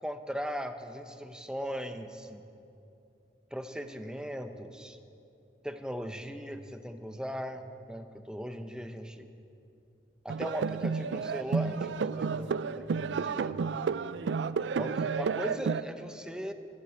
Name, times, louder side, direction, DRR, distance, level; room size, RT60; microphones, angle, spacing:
voice 1, 0.0-2.4 3.5-5.0 5.6-9.3 10.2-13.8 14.8-16.5, equal, 5° right, 8 dB, 0.6 m, -39 dB
sound 1, 10.3-15.8, right 5 dB, 90° right, 0.4 m, -31 dB
10.5 x 10.0 x 8.3 m, 2.7 s
head